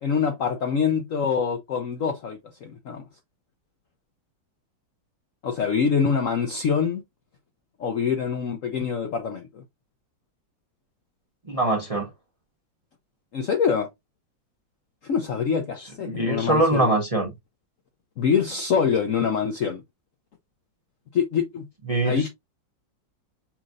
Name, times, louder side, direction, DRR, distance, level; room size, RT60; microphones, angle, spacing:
voice 1, 0.0-3.0 5.4-7.0 7.8-9.6 13.3-13.9 15.0-16.9 18.2-19.8 21.1-21.7 22.0-22.3, left 6 dB, 65° left, 0.8 m, -25 dB
voice 2, 11.5-12.1 16.0-17.3 21.9-22.3, right 2 dB, 25° right, 0.8 m, -23 dB
5.8 x 2.8 x 2.5 m
omnidirectional pair, 2.0 m